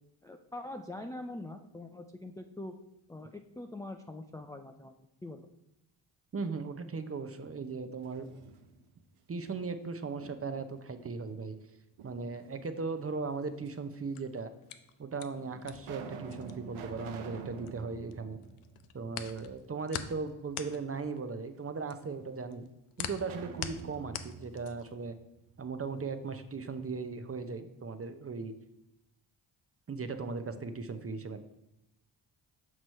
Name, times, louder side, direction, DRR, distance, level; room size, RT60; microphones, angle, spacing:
voice 1, 0.2-2.7 3.1-4.9 5.2-5.5, left 2 dB, 10° left, 4 dB, 0.3 m, -43 dB
voice 2, 6.3-8.3 9.3-11.6 12.0-14.5 15.0-18.4 18.9-22.7 23.0-25.2 25.6-28.5 29.9-31.4, right 4 dB, 30° right, 9 dB, 0.6 m, -38 dB
sound 1, 8.0-9.0 9.5-10.7 12.0-12.8 13.7-13.8 14.6-14.7 15.3-19.4 19.8-19.9 23.2-26.0, right 6 dB, 75° right, 0.7 m, -47 dB
sound 2, 13.9-18.1 18.4-25.0, left 10 dB, 80° left, 0.6 m, -43 dB
6.0 x 3.1 x 5.4 m, 0.92 s
supercardioid pair, 50°, 50 cm